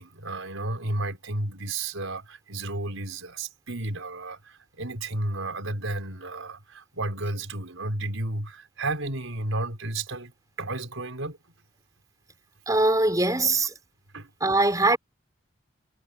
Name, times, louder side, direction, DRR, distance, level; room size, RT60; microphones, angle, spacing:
voice 1, 0.0-10.3 10.6-11.4 14.1-14.3, right 2 dB, 80° right, 4.8 m, -32 dB
voice 2, 12.7-13.7 14.4-15.0, right 2 dB, 15° right, 5.1 m, -21 dB
head